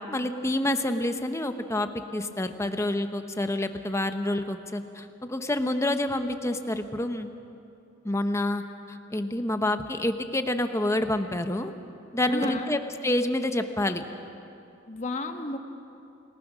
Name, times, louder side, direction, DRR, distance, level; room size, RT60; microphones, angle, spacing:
voice 1, 0.0-7.3 8.0-8.6 9.1-11.7 12.1-14.0, left 1 dB, 15° left, 7 dB, 1.0 m, -28 dB
voice 2, 12.3-12.7 14.9-15.6, left 2 dB, 40° left, 5 dB, 1.5 m, -32 dB
28.5 x 19.0 x 6.3 m, 2.6 s
head